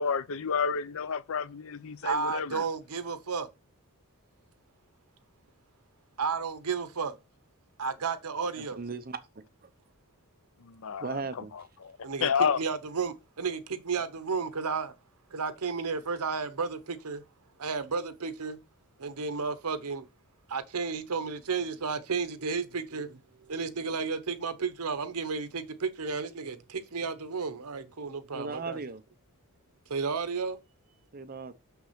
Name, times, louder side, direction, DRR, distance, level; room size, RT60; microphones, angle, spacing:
voice 1, 0.0-2.6 10.6-11.2 11.5-11.9 12.2-12.6, left 6 dB, 65° left, 0.6 m, -30 dB
voice 2, 2.0-3.5 6.2-7.2 7.8-8.8 12.0-12.3 12.6-14.9 15.3-17.2 17.6-18.6 19.0-20.0 20.5-23.2 23.5-28.8 29.9-30.6, right 5 dB, 80° right, 0.9 m, -32 dB
voice 3, 8.6-9.2 11.0-11.5 28.3-29.0 31.1-31.5, right 4 dB, 40° right, 0.8 m, -37 dB
6.3 x 5.9 x 5.8 m
head